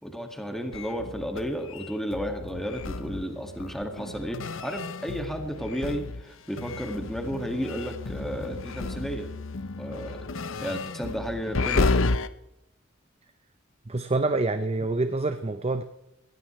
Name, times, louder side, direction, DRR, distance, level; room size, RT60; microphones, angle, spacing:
voice 1, 0.0-9.3 9.8-10.2 10.6-11.9, equal, ahead, 3 dB, 2.1 m, -33 dB
sound 1, 0.7-6.3 6.6-12.3, left 3 dB, 75° left, 0.8 m, -32 dB
voice 2, 13.9-15.8, right 2 dB, 30° right, 9 dB, 0.8 m, -26 dB
21.0 x 16.0 x 3.3 m, 0.86 s
head